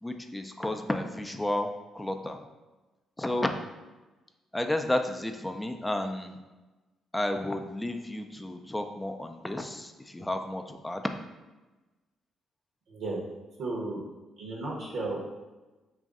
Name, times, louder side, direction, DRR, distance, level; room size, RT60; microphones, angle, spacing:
voice 1, 0.0-1.7 1.9-2.4 3.2-3.5 4.5-6.4 7.1-11.1, left 1 dB, 10° left, 5 dB, 0.4 m, -32 dB
voice 2, 12.9-13.2 13.6-14.0 14.4-15.2, right 2 dB, 70° right, -3 dB, 0.9 m, -33 dB
3.0 x 2.6 x 3.6 m, 1.1 s
supercardioid pair, 70°, 0 cm